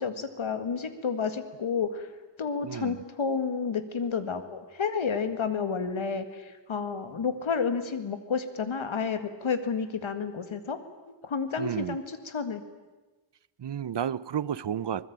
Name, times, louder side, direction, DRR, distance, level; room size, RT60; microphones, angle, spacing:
voice 1, 0.0-2.1 2.4-10.8 11.2-12.6, left 5 dB, 90° left, 10 dB, 2.1 m, -30 dB
voice 2, 2.6-3.0 11.6-12.0 13.6-15.1, right 9 dB, 60° right, 20 dB, 0.8 m, -32 dB
24.5 x 20.5 x 8.9 m, 1.2 s
wide cardioid pair, 90°, 46 cm